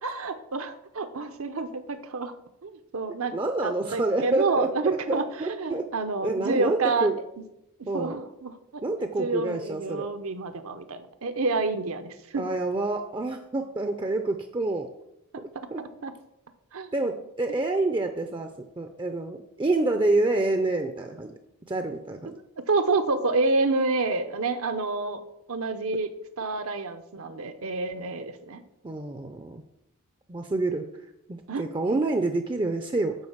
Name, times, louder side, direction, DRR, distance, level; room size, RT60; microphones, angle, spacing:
voice 1, 0.0-2.3 2.6-3.4 3.6-7.1 7.8-8.8 9.2-12.4 16.0-16.1 16.7-16.9 22.3-22.4 22.7-25.2 25.5-26.1 26.4-28.6 31.5-31.7, right 3 dB, 70° right, 9 dB, 0.8 m, -28 dB
voice 2, 3.3-5.9 6.2-7.2 7.9-8.2 8.8-10.1 12.3-14.9 15.4-15.8 16.9-18.5 18.8-21.3 21.7-22.3 28.8-29.6 30.3-30.8 31.3-33.2, right 2 dB, 20° right, 6 dB, 0.5 m, -27 dB
9.7 x 3.8 x 7.3 m, 0.85 s
head